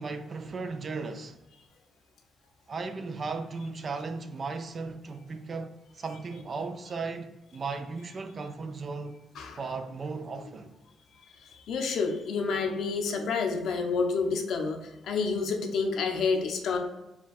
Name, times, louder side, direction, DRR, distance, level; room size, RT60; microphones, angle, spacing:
voice 1, 0.0-1.4 2.7-9.2 9.5-10.7, right 4 dB, 40° right, 0.4 m, -36 dB
voice 2, 11.7-16.8, left 4 dB, 70° left, 0.7 m, -29 dB
4.3 x 2.4 x 4.0 m
cardioid pair, 90°, 0 cm